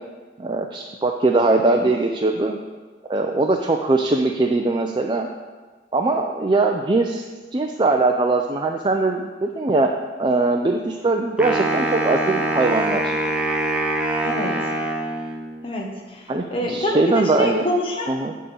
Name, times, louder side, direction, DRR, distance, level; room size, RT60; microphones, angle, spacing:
voice 1, 0.4-2.6 3.1-5.3 5.9-7.2 7.5-9.9 10.2-13.2 16.3-17.6 18.1-18.3, right 2 dB, 25° right, 2 dB, 0.5 m, -21 dB
Wind instrument woodwind instrument, 11.4-15.6, right 1 dB, 5° right, 0.9 m, -24 dB
voice 2, 14.2-14.6 15.6-18.2, left 1 dB, 35° left, -1 dB, 1.4 m, -26 dB
10.5 x 3.8 x 7.0 m, 1.4 s
head